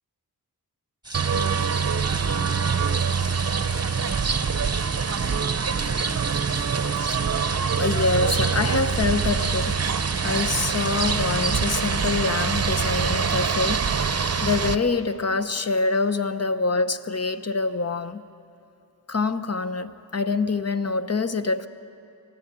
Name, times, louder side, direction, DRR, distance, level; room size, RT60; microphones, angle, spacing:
sound 1, 1.0-12.0, right 2 dB, 10° right, 1.6 m, -39 dB
washington carousel, 1.1-14.8, right 6 dB, 40° right, 0.8 m, -24 dB
voice 1, 7.2-9.8 10.2-18.2 19.1-21.7, left 3 dB, 40° left, 12 dB, 0.9 m, -25 dB
25.0 x 16.5 x 8.7 m, 2.7 s
wide cardioid pair, 85°, 38 cm